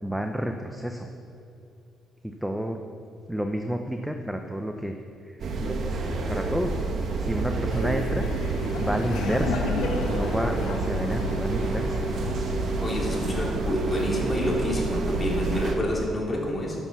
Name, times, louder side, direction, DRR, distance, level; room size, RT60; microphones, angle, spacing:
voice 1, 0.0-1.1 2.2-2.8 3.3-5.0 5.2-5.7 6.3-6.7 7.2-8.3 8.8-9.8 10.0-12.0 12.5-12.6 13.1-13.3, equal, 5° right, 4 dB, 0.7 m, -30 dB
sound 1, 5.4-15.8, right 3 dB, 60° right, 1.3 m, -28 dB
Laughter, 7.7-13.5, left 3 dB, 90° left, 1.3 m, -33 dB
voice 2, 12.8-16.8, left 1 dB, 25° left, -2 dB, 2.8 m, -28 dB
10.0 x 7.1 x 6.8 m, 2.6 s
cardioid pair, 90°, 0 cm